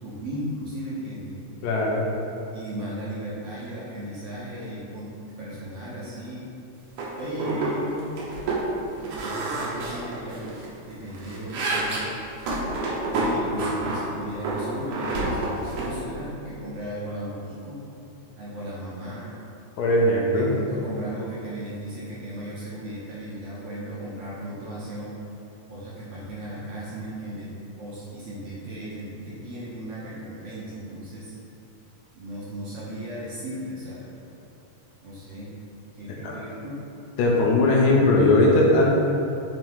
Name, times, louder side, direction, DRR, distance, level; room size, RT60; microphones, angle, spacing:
voice 1, 0.0-1.4 2.5-6.5 7.2-8.1 8.9-10.5 10.9-12.1 13.1-17.9 18.4-19.3 20.3-25.1 25.7-31.3 32.1-34.1 35.0-35.6 35.9-36.8, equal, 65° right, -8 dB, 1.7 m, -36 dB
voice 2, 1.6-2.1 19.8-20.5 36.2-36.3 37.2-38.9, left 2 dB, 75° left, -3 dB, 2.2 m, -19 dB
sound 1, 7.0-7.1 7.4-7.7 8.0-8.7 9.0-10.7 11.0-14.0 14.4-15.9, right 2 dB, 80° right, 2.2 m, -28 dB
7.5 x 3.0 x 4.7 m, 2.8 s
omnidirectional pair, 3.5 m